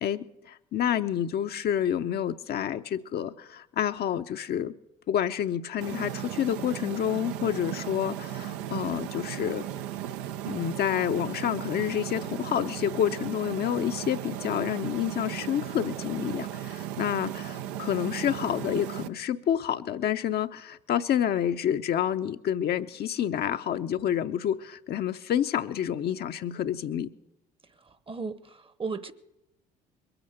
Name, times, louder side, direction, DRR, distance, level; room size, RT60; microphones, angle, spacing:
voice 1, 0.0-4.7 5.1-9.7 10.5-27.1, left 10 dB, 55° left, 8 dB, 0.7 m, -29 dB
sound 1, 5.8-19.1, right 12 dB, 80° right, 0.6 m, -36 dB
voice 2, 27.6-29.1, right 4 dB, 25° right, 16 dB, 0.9 m, -36 dB
22.0 x 8.9 x 6.6 m, 0.87 s
hypercardioid pair, 60°, 20 cm